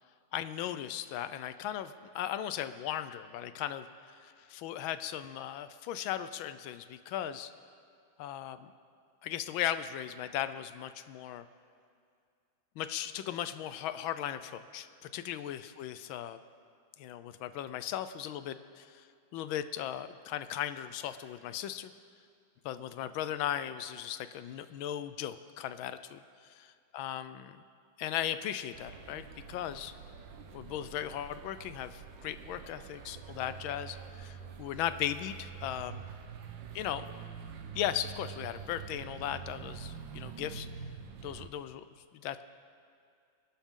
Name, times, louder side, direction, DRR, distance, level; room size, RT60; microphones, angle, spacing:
voice 1, 0.3-7.5 8.2-8.7 9.2-11.4 12.8-16.4 17.0-19.1 19.3-21.9 22.6-26.6 26.9-27.6 28.0-29.9 30.5-36.1 36.7-37.2 37.7-40.7 41.2-41.8 42.2-42.4, left 11 dB, 85° left, 12 dB, 1.4 m, -37 dB
sound 1, 28.7-41.5, right 7 dB, 70° right, 1.5 m, -46 dB
26.0 x 11.5 x 3.7 m, 2.3 s
omnidirectional pair, 2.2 m